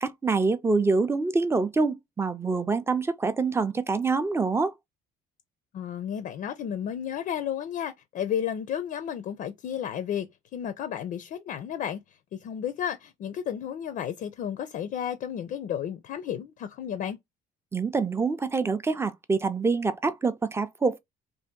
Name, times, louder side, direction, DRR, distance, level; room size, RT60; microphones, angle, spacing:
voice 1, 0.0-4.7 17.7-21.0, right 4 dB, 15° right, 0.4 m, -26 dB
voice 2, 5.7-17.2, left 9 dB, 55° left, 0.4 m, -33 dB
2.7 x 2.5 x 3.5 m
cardioid pair, 110°, 17 cm